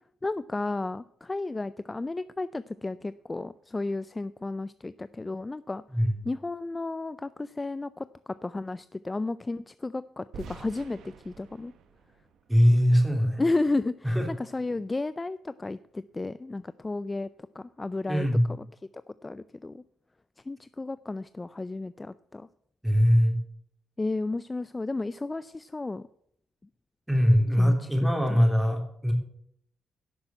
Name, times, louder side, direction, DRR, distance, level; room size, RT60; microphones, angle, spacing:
voice 1, 0.2-5.8 6.2-11.7 13.4-17.3 17.5-18.3 18.6-18.7 19.2-19.8 20.4-22.5 24.0-26.0 27.6-27.9 28.3-28.4, left 2 dB, 20° left, 15 dB, 0.4 m, -33 dB
sound 1, 10.3-13.3, right 6 dB, 75° right, 1.1 m, -48 dB
voice 2, 12.5-13.4 14.0-14.3 18.1-18.5 22.8-23.4 27.1-29.1, equal, 5° right, 2 dB, 3.3 m, -22 dB
11.5 x 6.1 x 8.9 m, 0.70 s
cardioid pair, 90°, 0 cm